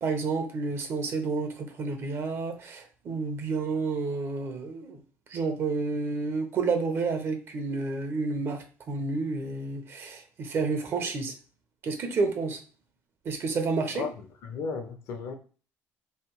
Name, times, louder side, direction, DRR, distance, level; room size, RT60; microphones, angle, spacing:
voice 1, 0.0-5.0 5.3-11.3 11.8-12.6 13.2-14.1, right 4 dB, 50° right, 1.1 m, -30 dB
voice 2, 14.4-15.3, left 5 dB, 70° left, 1.1 m, -34 dB
3.4 x 2.7 x 4.6 m
cardioid pair, 105°, 5 cm